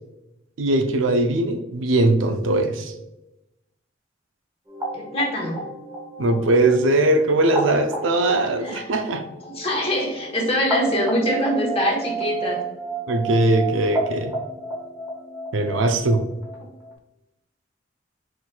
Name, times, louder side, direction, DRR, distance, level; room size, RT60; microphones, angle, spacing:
voice 1, 0.6-2.9 6.2-9.2 13.1-14.3 15.5-16.2, right 2 dB, 85° right, 6 dB, 0.5 m, -20 dB
sound 1, 4.7-16.9, right 3 dB, 15° right, 0.9 m, -32 dB
voice 2, 4.9-5.6 8.6-9.0 9.5-12.6, left 1 dB, 30° left, -1 dB, 1.0 m, -24 dB
4.4 x 3.9 x 2.2 m, 0.95 s
head